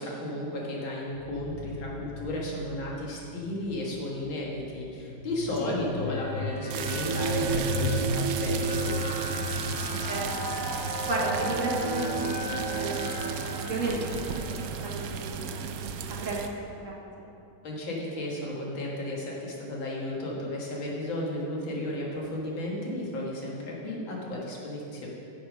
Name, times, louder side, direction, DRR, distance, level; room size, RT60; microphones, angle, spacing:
voice 1, 0.0-9.0 17.6-25.1, left 1 dB, 85° left, -3 dB, 2.3 m, -34 dB
sound 1, 1.1-12.7 13.5-13.8, left 1 dB, 55° left, 2.6 m, -36 dB
sound 2, 6.1-15.6, right 3 dB, 30° left, 0.7 m, -34 dB
sound 3, 6.7-16.5, right 6 dB, 80° right, 0.8 m, -35 dB
voice 2, 9.9-10.6 11.1-12.3 12.7-13.3 13.7-14.0 14.5-16.4 16.8-17.0, right 2 dB, 45° right, -3 dB, 1.5 m, -33 dB
8.7 x 6.9 x 5.3 m, 2.7 s
omnidirectional pair, 2.1 m